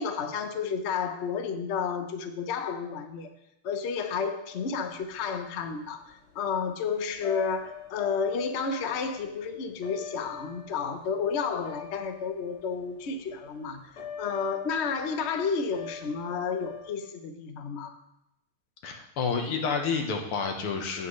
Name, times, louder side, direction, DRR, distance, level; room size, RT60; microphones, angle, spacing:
voice 1, 0.0-3.3 3.6-13.9 14.2-18.0, left 5 dB, 70° left, 7 dB, 0.6 m, -31 dB
sound 1, 4.5-16.9, left 7 dB, 45° left, 0.9 m, -45 dB
voice 2, 18.8-21.1, left 5 dB, 85° left, 4 dB, 2.1 m, -29 dB
16.0 x 6.0 x 3.2 m, 0.85 s
omnidirectional pair, 2.3 m